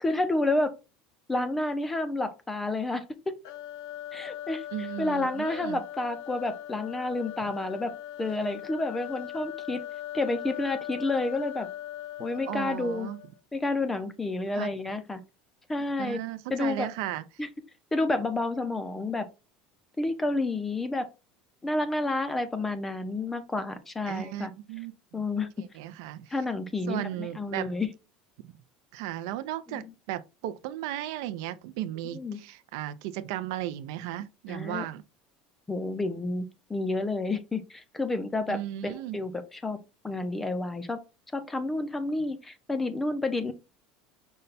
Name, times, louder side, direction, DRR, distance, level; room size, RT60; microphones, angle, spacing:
voice 1, 0.0-0.7 1.3-3.3 4.1-4.6 5.0-7.9 8.2-9.8 10.1-11.7 12.2-13.1 13.5-15.2 15.7-16.2 16.5-16.9 17.4-17.5 17.9-19.3 20.0-21.1 21.6-24.5 25.1-25.5 26.3-27.9 29.7-29.9 32.1-32.4 34.5-34.9 35.7-39.8 40.0-41.0 41.3-43.5, left 2 dB, 10° left, 0.4 m, -30 dB
sound 1, 3.4-13.4, left 13 dB, 70° left, 0.6 m, -40 dB
voice 2, 4.7-5.8 12.3-13.2 14.6-14.7 16.0-17.2 24.1-25.2 25.8-26.3 26.9-27.7 28.9-35.0 38.5-39.2, right 13 dB, 70° right, 0.4 m, -35 dB
5.3 x 2.2 x 3.9 m
cardioid pair, 175°, 2 cm